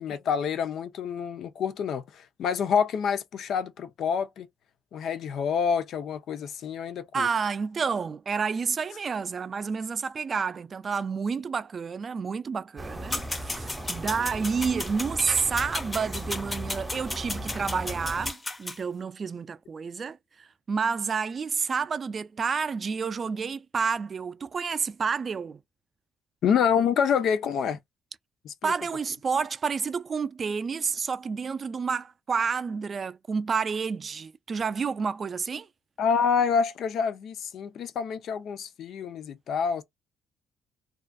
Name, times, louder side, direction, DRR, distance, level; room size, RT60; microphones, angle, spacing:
voice 1, 0.0-4.5 4.9-7.3 26.4-27.8 28.4-28.7 36.0-39.8, left 7 dB, 70° left, 0.4 m, -27 dB
voice 2, 7.1-25.6 28.6-35.7, right 5 dB, 45° right, 0.3 m, -29 dB
sound 1, 12.8-18.3, right 1 dB, 15° right, 0.7 m, -37 dB
sound 2, 13.1-18.8, left 2 dB, 20° left, 0.5 m, -35 dB
2.4 x 2.2 x 2.5 m
cardioid pair, 90°, 0 cm